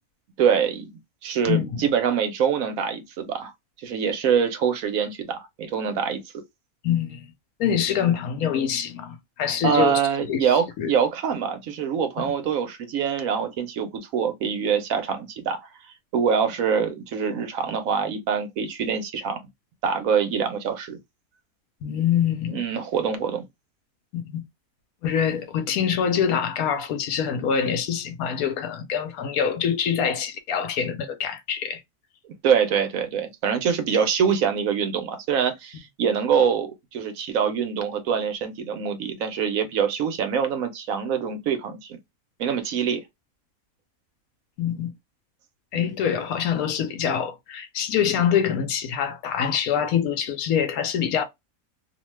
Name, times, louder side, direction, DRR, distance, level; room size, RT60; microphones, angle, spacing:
voice 1, 0.4-0.9 1.2-3.5 3.8-6.2 9.6-15.6 16.1-19.4 19.8-21.0 22.5-23.4 32.4-42.0 42.4-43.0 45.7-45.9, right 7 dB, 75° right, 1.1 m, -24 dB
voice 2, 1.5-1.9 6.8-7.3 7.6-10.0 10.3-10.5 10.8-10.9 12.2-12.3 21.8-22.6 24.1-24.4 25.0-31.8 44.6-44.9 45.7-51.2, left 8 dB, 80° left, 1.1 m, -25 dB
2.8 x 2.2 x 3.0 m
omnidirectional pair, 1.5 m